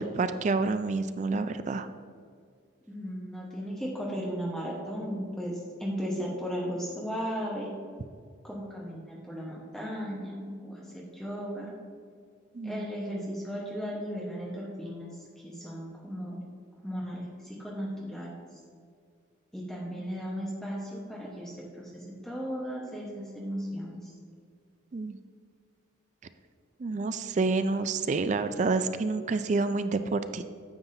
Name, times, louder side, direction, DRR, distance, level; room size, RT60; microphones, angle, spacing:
voice 1, 0.0-1.9 12.5-12.8 24.9-25.2 26.8-30.4, right 3 dB, 35° right, 10 dB, 0.3 m, -28 dB
voice 2, 2.9-7.7 8.4-11.7 12.6-15.1 15.4-16.4 16.8-18.4 19.5-24.1, equal, 5° left, -5 dB, 1.1 m, -36 dB
9.6 x 7.1 x 2.7 m, 2.1 s
head